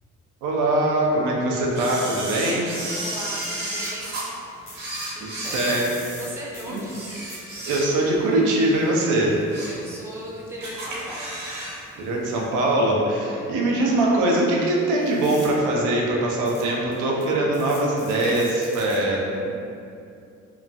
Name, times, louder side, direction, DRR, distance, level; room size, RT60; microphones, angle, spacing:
voice 1, 0.4-2.8 5.2-5.9 6.7-6.8 7.7-9.4 12.0-19.5, right 1 dB, 85° right, -2 dB, 0.5 m, -22 dB
Camera, 1.7-4.2 4.7-6.4 6.8-8.2 8.6-8.7 9.2-9.8 10.2-10.3 10.6-11.8 12.0-12.1, right 1 dB, 65° right, 1.1 m, -32 dB
sound 1, 2.9-3.5 3.8-3.9 4.7-5.1 5.4-7.4 7.7-7.8 8.7-8.8 11.6-11.9 12.6-12.7 15.0-15.5 16.5-16.6 16.9-17.2 17.5-19.0, left 2 dB, 70° left, 1.2 m, -42 dB
voice 2, 2.9-4.2 5.1-7.0 9.7-11.4 13.3-13.5, equal, 10° right, -4 dB, 0.5 m, -38 dB
2.9 x 2.2 x 2.5 m, 2.6 s
cardioid pair, 90°, 30 cm